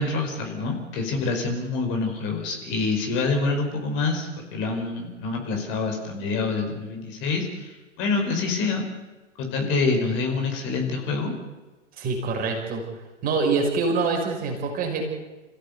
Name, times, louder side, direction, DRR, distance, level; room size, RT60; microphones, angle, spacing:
voice 1, 0.0-8.9 9.4-11.3, left 3 dB, 30° left, 3 dB, 5.2 m, -26 dB
voice 2, 12.0-12.8 13.2-15.1, right 4 dB, 25° right, 1 dB, 5.9 m, -25 dB
29.5 x 16.0 x 8.3 m, 1.2 s
figure-of-eight pair, 110°, 37 cm